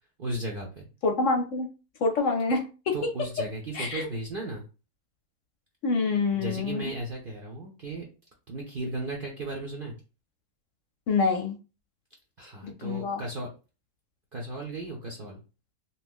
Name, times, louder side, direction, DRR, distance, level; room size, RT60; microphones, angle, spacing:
voice 1, 0.2-0.8 2.9-4.6 6.3-8.0 8.5-9.9 12.4-13.5 14.3-15.4, right 2 dB, 55° right, -1 dB, 0.6 m, -35 dB
voice 2, 1.0-1.7 2.0-2.9 3.7-4.1 5.8-6.9 11.1-11.6 12.6-13.2, left 4 dB, 65° left, 4 dB, 0.9 m, -26 dB
2.8 x 2.4 x 3.5 m, 0.32 s
omnidirectional pair, 1.6 m